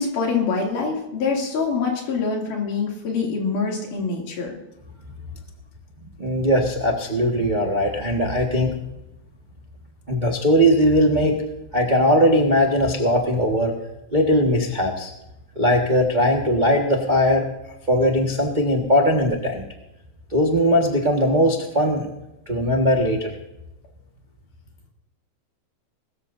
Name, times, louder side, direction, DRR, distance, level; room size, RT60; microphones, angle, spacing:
voice 1, 0.0-4.5, left 4 dB, 85° left, -1 dB, 4.2 m, -25 dB
voice 2, 6.2-8.7 10.1-11.5 11.7-13.7 14.1-15.1 15.5-17.4 17.9-19.6 20.3-22.1 22.5-23.3, equal, 45° right, 0 dB, 0.5 m, -19 dB
21.0 x 14.0 x 2.7 m, 0.90 s
omnidirectional pair, 3.6 m